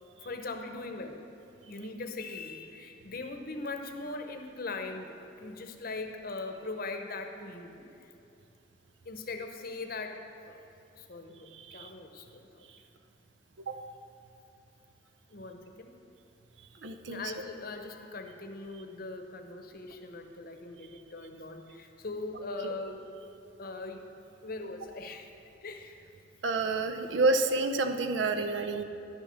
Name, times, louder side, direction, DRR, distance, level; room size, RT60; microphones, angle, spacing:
voice 1, 0.2-1.2 1.6-8.1 9.0-10.6 10.9-12.7 15.3-15.9 17.1-23.1 23.6-24.1 24.4-25.3 25.6-26.1 27.0-27.1, left 3 dB, 50° left, 6 dB, 0.9 m, -40 dB
voice 2, 11.5-11.9 13.7-13.8 16.8-17.2 22.6-22.7 26.4-28.8, right 3 dB, 70° right, 7 dB, 0.7 m, -29 dB
11.5 x 6.8 x 6.4 m, 2.7 s
head